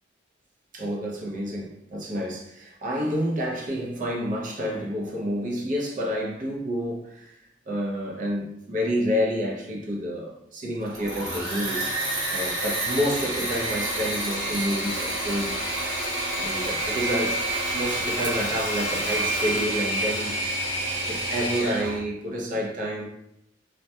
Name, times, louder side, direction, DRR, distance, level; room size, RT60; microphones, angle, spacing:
voice 1, 0.7-7.4 7.7-15.5 16.3-17.4 17.7-20.3 21.1-23.1, equal, 45° right, 0.6 m, -29 dB
Engine / Mechanisms, 10.8-22.0, right 1 dB, 60° right, 1.0 m, -28 dB
2.3 x 2.1 x 2.7 m
head